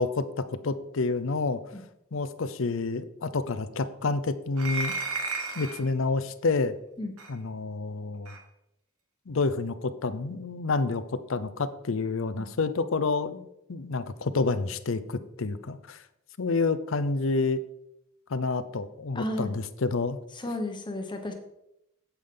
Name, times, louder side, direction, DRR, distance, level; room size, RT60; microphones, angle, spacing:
voice 1, 0.0-1.6 2.1-4.9 5.5-6.7 7.3-8.3 9.3-16.0 16.4-17.6 18.3-20.2, left 3 dB, 65° left, 13 dB, 0.6 m, -29 dB
sound 1, 4.6-5.9 7.2-7.3 8.3-8.4, right 3 dB, 85° right, 1.2 m, -33 dB
voice 2, 19.1-19.5 20.3-21.3, left 1 dB, 20° left, 4 dB, 1.1 m, -33 dB
8.7 x 8.3 x 3.8 m, 0.81 s
head